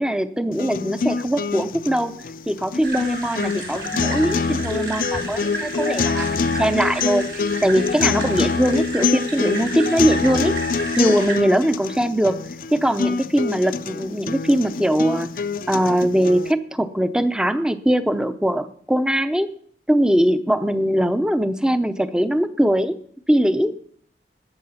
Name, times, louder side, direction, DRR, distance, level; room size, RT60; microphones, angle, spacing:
voice 1, 0.0-2.1 2.5-10.6 11.0-19.5 19.9-22.9 23.3-23.7, right 1 dB, 5° right, 12 dB, 0.6 m, -21 dB
sound 1, 0.5-16.5, left 4 dB, 50° left, 0.5 m, -26 dB
sound 2, 2.8-11.3, right 2 dB, 70° right, 3.8 m, -33 dB
20.0 x 7.6 x 5.7 m, 0.62 s
head